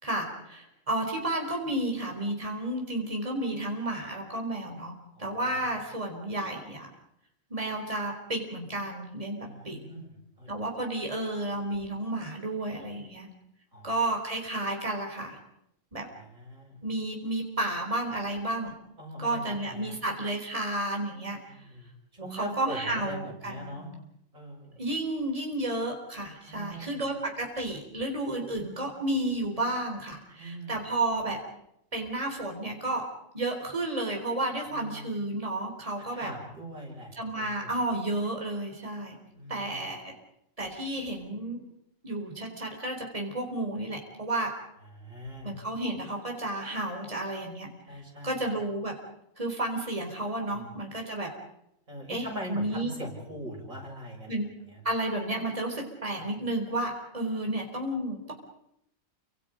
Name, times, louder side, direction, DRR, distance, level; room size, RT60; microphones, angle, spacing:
voice 1, 0.0-4.9 5.2-6.9 7.5-9.8 10.5-13.3 13.8-15.4 15.9-16.1 16.8-18.7 19.2-21.4 22.2-23.8 24.8-31.4 31.9-33.0 33.3-36.3 37.2-39.2 39.5-40.1 40.6-41.6 42.0-44.5 45.4-47.7 48.2-48.9 49.4-51.3 52.1-52.9 54.3-54.5 54.8-58.3, right 1 dB, 25° right, 2 dB, 4.4 m, -32 dB
voice 2, 5.1-5.7 9.4-10.5 13.7-13.9 16.1-16.7 19.0-20.0 21.5-21.9 22.2-23.9 24.3-24.8 26.4-27.0 30.4-30.7 34.7-35.1 36.0-37.7 39.3-39.8 44.8-45.6 47.9-48.4 50.5-50.7 51.9-54.3 54.7-54.8 56.2-56.3, equal, 85° right, -1 dB, 7.9 m, -42 dB
29.5 x 26.0 x 5.2 m, 0.79 s
omnidirectional pair, 1.4 m